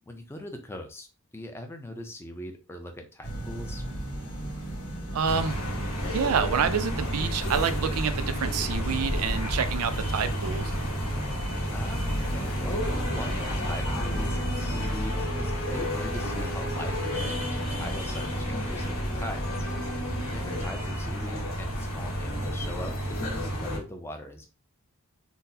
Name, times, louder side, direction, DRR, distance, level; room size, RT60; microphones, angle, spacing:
voice 1, 0.1-1.1 1.3-3.8 11.7-12.8 13.1-19.6 20.3-24.5, left 1 dB, 10° left, 5 dB, 0.4 m, -41 dB
sound 1, 3.2-14.9, right 1 dB, 85° left, 1.5 m, -36 dB
voice 2, 5.1-5.6 6.0-10.7 20.5-20.6, right 6 dB, 80° right, 10 dB, 0.4 m, -28 dB
sound 2, 5.2-23.8, equal, 70° left, 1.3 m, -31 dB
sound 3, 12.2-20.6, left 2 dB, 45° left, 1.3 m, -38 dB
3.8 x 2.1 x 2.7 m, 0.32 s
head